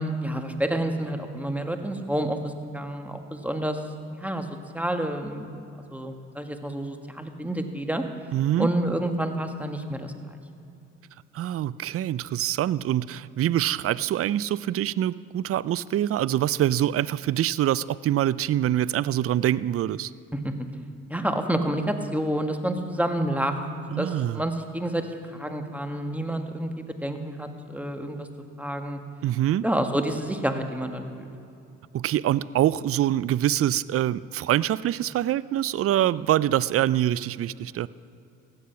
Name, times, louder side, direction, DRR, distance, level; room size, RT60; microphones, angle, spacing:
voice 1, 0.0-3.8 4.1-4.5 4.7-5.6 5.9-8.0 8.6-10.1 20.4-20.5 21.1-23.5 24.0-28.3 28.6-29.0 29.6-31.3, right 1 dB, 5° right, 5 dB, 1.6 m, -29 dB
voice 2, 8.3-8.7 11.3-20.1 23.9-24.4 29.2-29.7 31.9-37.9, right 12 dB, 40° right, 20 dB, 0.4 m, -25 dB
15.5 x 10.0 x 5.8 m, 2.6 s
hypercardioid pair, 50°, 36 cm